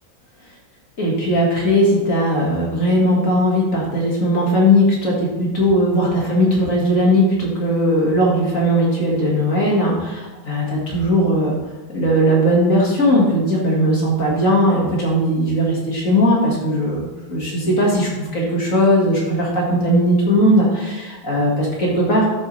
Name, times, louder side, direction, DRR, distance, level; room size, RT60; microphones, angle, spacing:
voice 1, 1.0-11.6 11.9-22.3, equal, 40° left, -3 dB, 2.1 m, -18 dB
12.0 x 6.8 x 3.3 m, 1.1 s
omnidirectional pair, 2.2 m